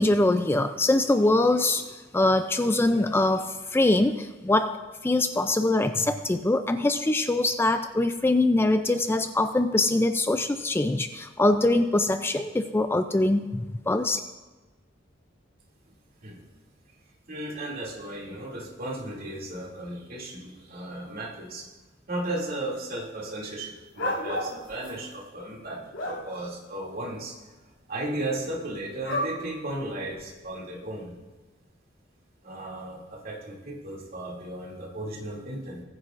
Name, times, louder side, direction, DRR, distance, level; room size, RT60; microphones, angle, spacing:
voice 1, 0.0-14.2, left 2 dB, 10° left, 9 dB, 0.3 m, -23 dB
voice 2, 17.3-21.7 22.1-27.4 27.9-31.2 32.4-35.8, right 1 dB, 50° right, -2 dB, 2.6 m, -35 dB
sound 1, 24.0-24.9 25.6-26.2 29.0-29.3 30.2-30.3, left 1 dB, 90° left, 2.6 m, -30 dB
21.0 x 9.7 x 2.5 m, 1.2 s
head